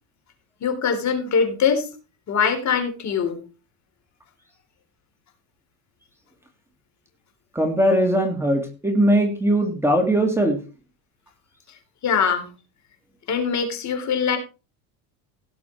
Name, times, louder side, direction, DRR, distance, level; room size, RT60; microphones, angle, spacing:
voice 1, 0.6-1.9 2.3-3.4 12.0-12.5 13.3-14.4, left 6 dB, 40° left, 6 dB, 3.8 m, -22 dB
voice 2, 7.5-10.6, right 1 dB, 5° right, 3 dB, 2.5 m, -20 dB
17.5 x 6.9 x 4.5 m, 0.33 s
cardioid pair, 130°, 41 cm